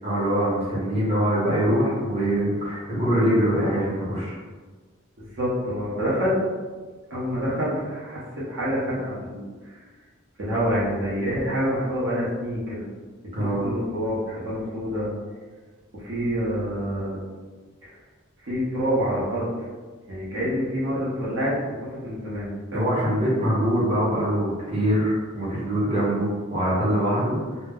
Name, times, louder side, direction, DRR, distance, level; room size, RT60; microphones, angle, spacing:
voice 1, 0.0-4.4 13.3-13.6 22.7-27.4, equal, 30° right, -8 dB, 0.7 m, -23 dB
voice 2, 5.2-6.4 7.1-8.2 8.5-9.8 10.4-12.9 13.2-15.1 15.9-17.2 17.8-17.9 18.4-19.5 20.1-22.9, equal, 65° right, -7 dB, 0.7 m, -27 dB
2.2 x 2.0 x 3.4 m, 1.4 s
head